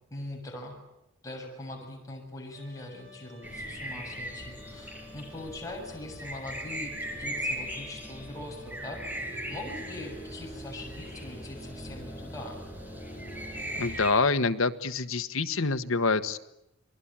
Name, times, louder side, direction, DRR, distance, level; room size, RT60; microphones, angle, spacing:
voice 1, 0.1-0.8 1.2-6.9 7.2-9.2 9.5-12.6, left 1 dB, 15° left, -1 dB, 7.1 m, -42 dB
Trumpet, 2.5-9.4, left 5 dB, 80° right, 6.3 m, -54 dB
sound 1, 3.4-14.1, equal, 10° right, 6.4 m, -39 dB
voice 2, 13.8-16.4, left 3 dB, 85° left, 10 dB, 1.3 m, -26 dB
29.0 x 21.5 x 8.8 m, 0.87 s
head